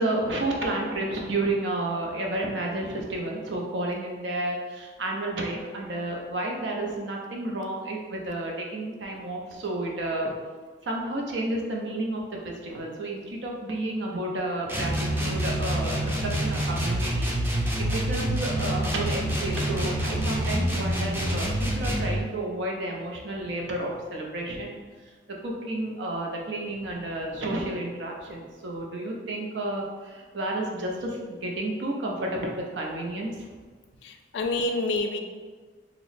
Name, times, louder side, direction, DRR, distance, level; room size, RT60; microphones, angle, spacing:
voice 1, 0.0-10.3 10.8-24.8 25.4-33.5, right 1 dB, 80° right, -1 dB, 0.6 m, -31 dB
sound 1, 14.7-22.2, right 1 dB, 10° right, 0.4 m, -27 dB
voice 2, 34.0-35.2, left 2 dB, 75° left, 5 dB, 0.4 m, -28 dB
2.9 x 2.0 x 4.0 m, 1.5 s
head